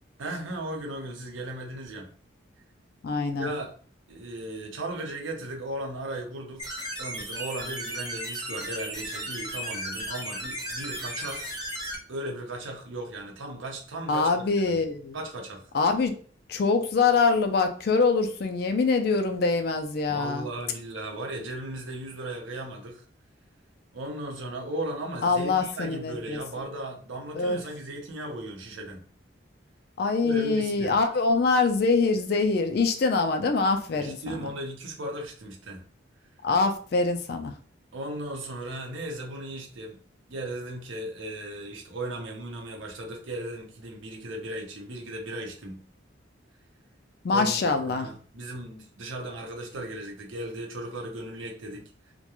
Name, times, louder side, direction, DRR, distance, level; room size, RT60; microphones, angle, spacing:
voice 1, 0.2-2.1 3.4-3.7 4.1-6.7 7.0-11.5 12.1-14.4 14.7-14.8 15.1-15.7 20.1-23.0 23.9-29.0 30.2-31.0 34.0-35.8 37.9-40.0 40.3-45.9 47.3-51.9, right 1 dB, 80° right, 0.7 m, -36 dB
voice 2, 3.0-3.5 14.1-15.2 15.7-16.1 16.5-20.5 25.2-26.4 27.3-27.6 30.0-34.2 36.4-37.5 47.2-48.1, left 4 dB, 50° left, 0.3 m, -24 dB
sound 1, 6.6-12.0, equal, 20° right, 0.7 m, -35 dB
2.3 x 2.1 x 2.9 m
head